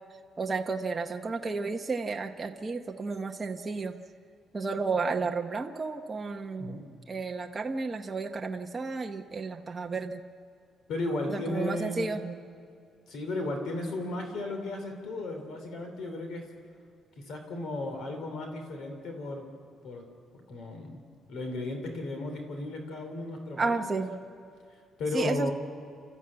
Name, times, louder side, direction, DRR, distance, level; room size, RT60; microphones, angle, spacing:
voice 1, 0.4-3.9 4.5-6.8 7.1-10.2 11.3-12.4 23.6-24.1 25.1-25.5, right 4 dB, 20° right, 3 dB, 0.8 m, -32 dB
voice 2, 6.6-6.9 10.9-12.1 13.1-16.5 17.2-19.5 19.8-20.1 20.3-21.0 21.3-24.1 24.7-25.5, left 2 dB, 60° left, 4 dB, 3.1 m, -35 dB
30.0 x 14.0 x 8.7 m, 2.4 s
cardioid pair, 155°, 0 cm